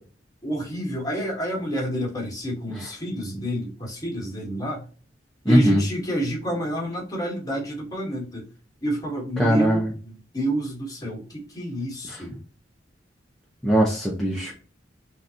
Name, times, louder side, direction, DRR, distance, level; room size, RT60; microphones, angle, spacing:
voice 1, 0.4-4.8 5.4-8.4 8.8-12.3, right 1 dB, 20° left, -2 dB, 1.4 m, -29 dB
voice 2, 5.5-5.8 9.4-9.9 13.6-14.5, equal, ahead, -4 dB, 0.6 m, -20 dB
3.7 x 2.5 x 2.8 m, 0.38 s
head